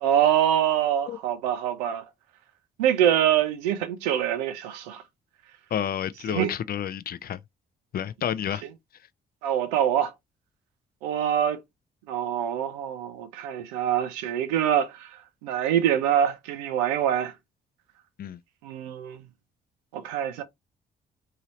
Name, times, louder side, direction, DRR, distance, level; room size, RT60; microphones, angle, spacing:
voice 1, 0.0-2.0 2.8-5.0 6.3-6.5 9.4-10.1 11.0-11.6 12.1-17.3 18.6-19.2 19.9-20.4, right 10 dB, 90° right, 0.5 m, -25 dB
voice 2, 5.7-7.4 7.9-8.6 18.2-18.4, left 9 dB, 50° left, 0.4 m, -30 dB
2.8 x 2.7 x 2.9 m
hypercardioid pair, 45°, 20 cm